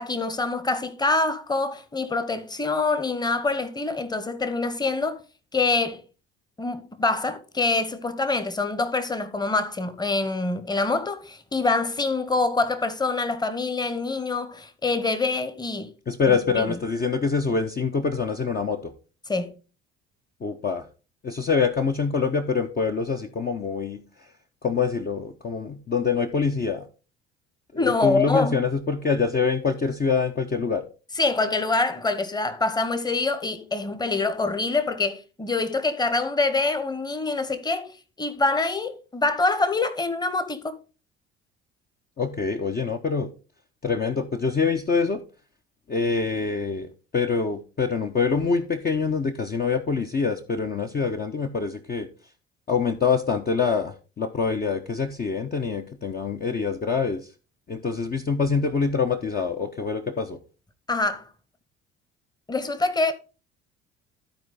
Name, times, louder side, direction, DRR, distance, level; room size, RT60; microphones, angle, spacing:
voice 1, 0.0-5.2 5.5-6.0 6.6-15.9 16.3-16.8 19.3-19.5 27.7-28.6 31.1-40.8 60.9-61.2 62.5-63.1, left 3 dB, 10° left, 1.2 m, -25 dB
voice 2, 16.1-18.9 20.4-20.9 21.2-24.0 24.6-26.9 27.7-30.8 42.2-43.3 43.8-45.2 45.9-52.1 52.7-57.3 57.7-60.4, left 5 dB, 25° left, 0.9 m, -25 dB
13.0 x 4.6 x 4.2 m
figure-of-eight pair, 60°, 34 cm